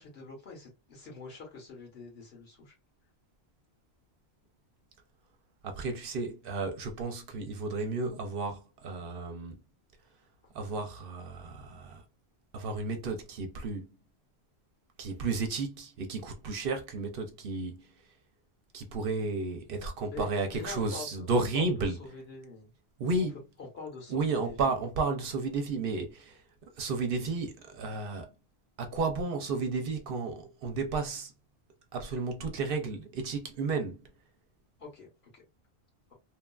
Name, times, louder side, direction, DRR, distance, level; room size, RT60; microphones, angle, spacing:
voice 1, 0.0-2.7 20.1-21.3 21.5-21.7 22.0-22.7 23.6-24.7 34.8-35.1 35.3-35.4, left 4 dB, 70° left, 1.4 m, -44 dB
voice 2, 5.6-9.6 10.5-12.0 12.5-13.9 15.0-17.9 18.7-22.0 23.0-23.4 24.1-26.4 26.8-28.3 28.8-31.3 31.9-34.1, right 3 dB, 65° right, 0.7 m, -32 dB
2.9 x 2.3 x 2.2 m
omnidirectional pair, 1.1 m